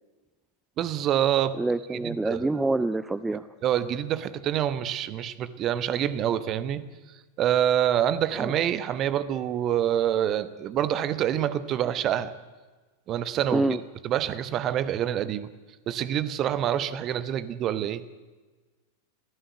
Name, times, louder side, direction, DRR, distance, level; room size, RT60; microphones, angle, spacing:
voice 1, 0.8-1.6 1.9-2.5 3.6-6.8 7.4-12.3 13.1-13.7 14.0-15.5 15.9-18.0, right 10 dB, 35° right, 15 dB, 1.2 m, -26 dB
voice 2, 1.6-3.5 8.4-8.5 13.5-13.8, right 2 dB, 10° right, 14 dB, 0.6 m, -26 dB
25.5 x 15.5 x 8.0 m, 1.3 s
figure-of-eight pair, 90°, 0 cm